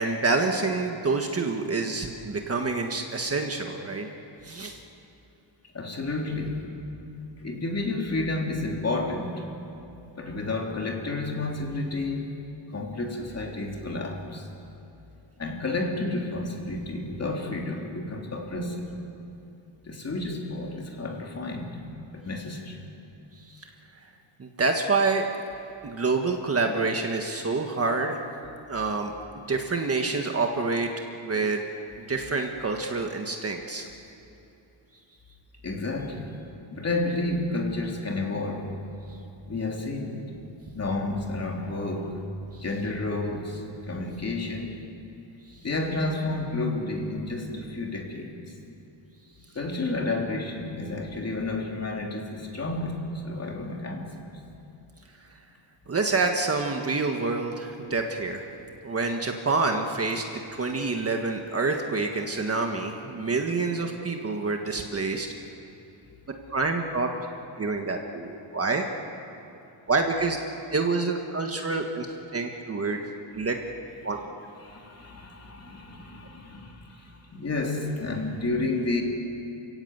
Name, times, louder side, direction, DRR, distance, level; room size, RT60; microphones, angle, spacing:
voice 1, 0.0-4.1 4.4-4.8 23.5-23.7 24.4-25.3 25.8-28.2 28.7-29.1 29.5-30.9 31.2-31.7 32.1-33.9 55.9-58.5 58.8-60.2 60.5-65.3 66.5-67.1 67.6-68.8 69.9-70.4 70.7-73.0 73.3-73.6 74.0-74.2, right 3 dB, 30° right, 3 dB, 1.5 m, -27 dB
voice 2, 5.7-6.7 7.4-9.5 10.2-12.3 12.7-14.5 15.4-18.9 19.8-21.8 22.1-22.8 35.6-36.4 36.7-38.7 39.5-40.2 40.7-42.2 42.5-44.8 45.6-48.3 49.5-54.1 74.6-79.0, left 2 dB, 30° left, 0 dB, 3.3 m, -31 dB
29.0 x 17.0 x 8.1 m, 2.8 s
wide cardioid pair, 145°, 49 cm